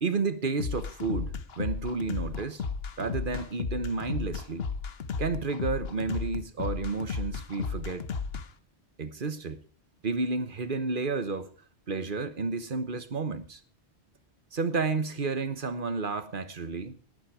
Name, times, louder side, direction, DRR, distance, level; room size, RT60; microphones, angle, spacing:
voice 1, 0.0-2.6 3.0-4.6 5.2-8.0 9.0-9.6 10.0-11.5 11.9-13.6 14.5-17.0, right 4 dB, 50° right, 1.3 m, -31 dB
sound 1, 0.6-8.5, left 5 dB, 65° left, 1.3 m, -34 dB
18.5 x 8.9 x 4.9 m
omnidirectional pair, 1.1 m